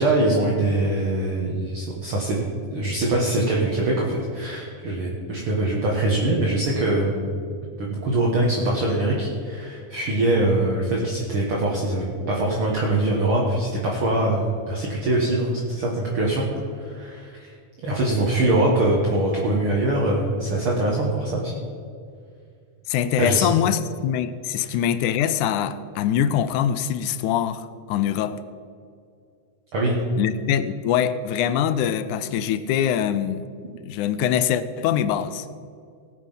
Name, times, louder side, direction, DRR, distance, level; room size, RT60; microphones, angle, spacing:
voice 1, 0.0-2.4 2.7-7.5 7.8-16.5 16.8-17.5 17.8-21.5 23.2-23.5 24.6-24.7 29.7-30.0, right 2 dB, 50° right, -3 dB, 2.2 m, -23 dB
voice 2, 22.9-28.4 30.2-33.5 33.8-35.5, left 9 dB, 80° left, 13 dB, 2.0 m, -23 dB
18.5 x 7.6 x 5.7 m, 2.3 s
omnidirectional pair, 3.7 m